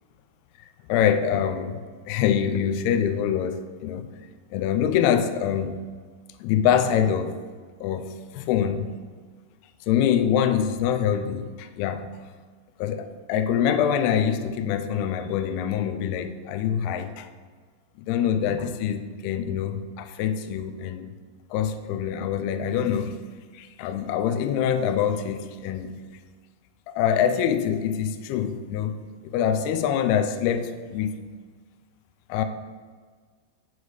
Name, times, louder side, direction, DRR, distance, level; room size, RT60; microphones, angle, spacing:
voice 1, 0.6-1.8 2.1-4.1 4.5-5.8 6.4-7.4 7.8-8.9 9.9-12.1 12.8-17.3 18.0-21.1 21.5-23.2 23.5-26.0 26.9-31.2 32.3-32.4, left 8 dB, 85° left, 8 dB, 2.3 m, -25 dB
8.0 x 6.7 x 4.8 m, 1.6 s
omnidirectional pair, 5.0 m